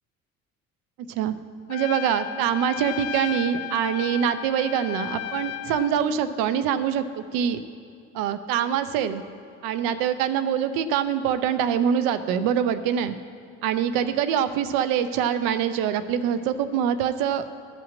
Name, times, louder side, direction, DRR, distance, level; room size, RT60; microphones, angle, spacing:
Trumpet, 1.7-6.0, left 13 dB, 40° left, 0.4 m, -34 dB
voice 1, 1.7-7.6 8.1-9.2 9.6-13.2 13.6-17.4, right 8 dB, 55° right, 12 dB, 0.7 m, -24 dB
11.5 x 5.7 x 8.6 m, 2.4 s
figure-of-eight pair, 60°, 40 cm